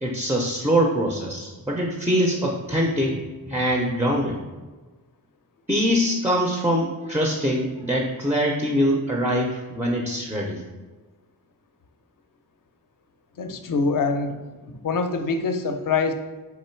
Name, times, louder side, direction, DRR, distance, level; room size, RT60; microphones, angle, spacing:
voice 1, 0.0-4.4 5.7-10.6, equal, 5° right, -1 dB, 0.3 m, -23 dB
voice 2, 13.4-14.4 14.8-16.1, left 4 dB, 60° left, 7 dB, 0.5 m, -24 dB
3.8 x 3.0 x 4.3 m, 1.3 s
wide cardioid pair, 135°, 38 cm